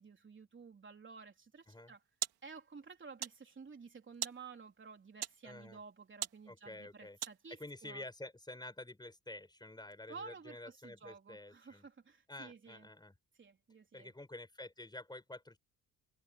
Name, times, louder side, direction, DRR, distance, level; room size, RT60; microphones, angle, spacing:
voice 1, 0.0-2.0 2.4-7.6 7.8-8.0 10.1-12.9 13.4-14.1, right 5 dB, 30° right, 3.7 m, -53 dB
sound 1, 1.6-7.7, right 12 dB, 85° right, 2.8 m, -46 dB
voice 2, 5.4-5.8 6.5-7.2 7.5-11.9 12.3-13.1 13.9-15.6, left 2 dB, 10° left, 5.2 m, -49 dB
cardioid pair, 120°, 37 cm